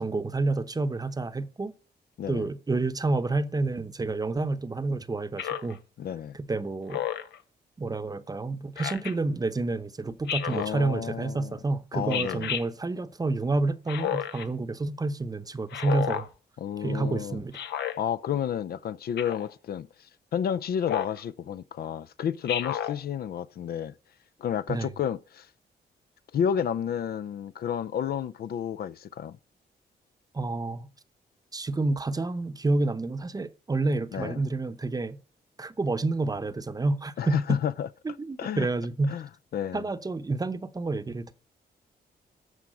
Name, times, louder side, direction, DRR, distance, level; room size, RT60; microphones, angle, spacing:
voice 1, 0.0-1.7 2.3-5.8 6.3-7.0 7.8-16.3 16.8-17.6 24.7-24.9 30.3-30.9 31.5-35.2 35.6-37.6 38.0-39.1 39.7-41.3, right 3 dB, 20° right, 0.8 m, -29 dB
voice 2, 2.2-2.5 6.0-6.4 10.5-11.6 11.9-12.5 16.6-17.4 18.0-23.9 24.4-25.5 26.3-29.4 34.1-34.4 37.2-37.9 38.4-38.7 39.1-39.3 39.5-39.8, left 8 dB, 65° left, 0.5 m, -31 dB
Speech synthesizer, 5.4-5.8 6.9-7.4 8.8-9.1 10.3-10.7 12.1-12.6 13.9-14.5 15.7-16.3 17.5-18.0 19.2-19.5 20.8-21.2 22.5-23.0, left 10 dB, 85° left, 1.0 m, -31 dB
13.0 x 4.8 x 7.7 m
cardioid pair, 105°, 17 cm